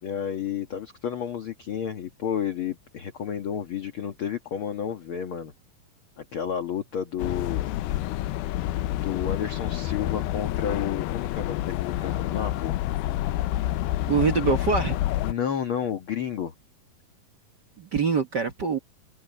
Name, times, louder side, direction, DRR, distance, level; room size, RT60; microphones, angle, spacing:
voice 1, 0.0-5.5 6.2-7.7 9.0-12.7 15.2-16.5, left 8 dB, 55° left, 1.6 m, -31 dB
sound 1, 7.2-15.3, left 14 dB, 90° left, 2.6 m, -28 dB
voice 2, 14.1-15.0 17.8-18.8, right 5 dB, 70° right, 1.0 m, -24 dB
omnidirectional pair, 4.1 m